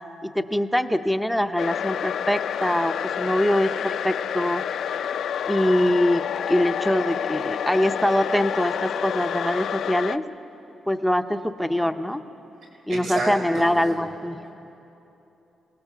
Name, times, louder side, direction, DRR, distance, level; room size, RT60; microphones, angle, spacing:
voice 1, 0.2-4.6 5.5-10.2 10.9-12.2 12.9-14.4, left 1 dB, ahead, 7 dB, 0.6 m, -23 dB
sound 1, 1.6-10.2, left 8 dB, 70° left, 0.4 m, -28 dB
voice 2, 12.9-13.8, right 2 dB, 80° right, 0 dB, 5.0 m, -30 dB
28.5 x 18.5 x 6.8 m, 2.9 s
wide cardioid pair, 155°, 0 cm